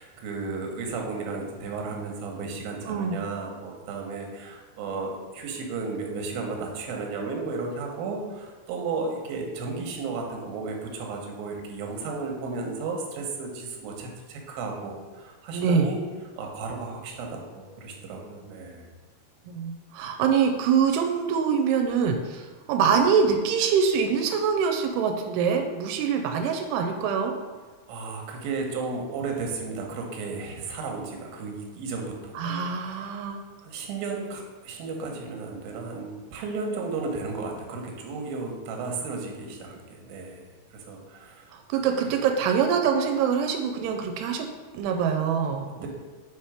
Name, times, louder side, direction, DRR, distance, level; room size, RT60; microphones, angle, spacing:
voice 1, 0.0-16.0 16.4-18.9 27.9-33.2 33.6-40.4 40.7-41.8 45.7-45.9, right 4 dB, 75° right, 1 dB, 2.6 m, -34 dB
voice 2, 2.9-3.2 15.5-15.9 19.5-27.3 32.4-33.4 41.7-44.5 44.7-45.9, right 6 dB, 90° right, 4 dB, 2.6 m, -24 dB
5.8 x 4.4 x 4.9 m, 1.4 s
omnidirectional pair, 4.6 m